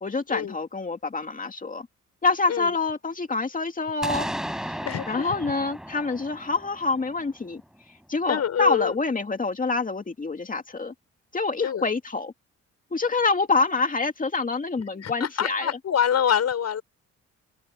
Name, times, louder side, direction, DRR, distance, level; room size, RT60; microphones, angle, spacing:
voice 1, 0.0-1.9 2.2-4.3 4.7-4.8 5.1-7.6 8.1-10.9 11.3-12.3 12.9-15.8, left 3 dB, 25° left, 2.5 m, -26 dB
sound 1, 4.0-7.8, equal, ahead, 7.4 m, -35 dB
voice 2, 4.8-5.2 8.3-8.9 11.6-11.8 15.0-16.8, left 8 dB, 55° left, 6.1 m, -25 dB
open air
cardioid pair, 90°, 30 cm